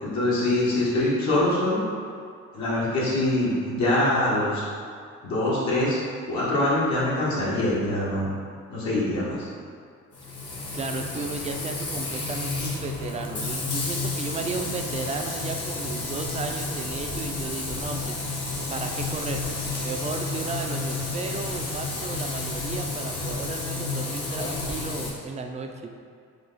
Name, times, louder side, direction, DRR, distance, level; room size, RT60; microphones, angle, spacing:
voice 1, 0.0-1.8 2.5-4.6 5.2-6.0 6.3-8.3 8.7-9.5, left 1 dB, 65° left, -8 dB, 1.4 m, -24 dB
Frying (food), 10.1-25.1, left 3 dB, 50° left, 1.2 m, -31 dB
voice 2, 10.7-19.4 19.8-26.0, right 4 dB, 25° right, 4 dB, 0.4 m, -34 dB
4.9 x 2.3 x 3.9 m, 2.2 s
cardioid pair, 90°, 30 cm